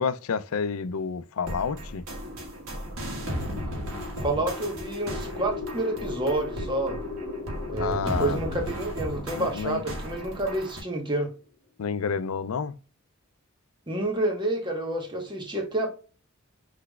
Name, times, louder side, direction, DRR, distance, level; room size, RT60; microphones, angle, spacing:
voice 1, 0.0-2.1 7.8-8.4 9.3-9.8 11.8-12.7, left 6 dB, 80° left, 0.5 m, -29 dB
sound 1, 1.4-10.8, equal, 80° right, 1.5 m, -35 dB
sound 2, 3.1-11.1, left 4 dB, 30° left, 1.2 m, -39 dB
voice 2, 4.2-7.0 7.7-11.3 13.9-16.0, right 2 dB, 20° right, 1.1 m, -29 dB
5.9 x 3.2 x 2.3 m
head